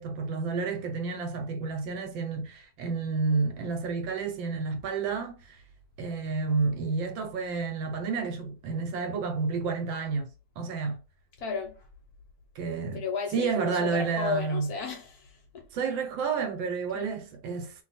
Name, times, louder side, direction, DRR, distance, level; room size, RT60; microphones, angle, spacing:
voice 1, 0.0-5.6 6.0-10.3 10.6-11.0 12.5-13.0 13.3-14.7 15.7-17.7, right 4 dB, 80° right, 1.5 m, -30 dB
voice 2, 11.4-11.8 12.9-15.6 16.9-17.1, left 5 dB, 65° left, 1.0 m, -34 dB
3.0 x 2.3 x 4.1 m
omnidirectional pair, 2.0 m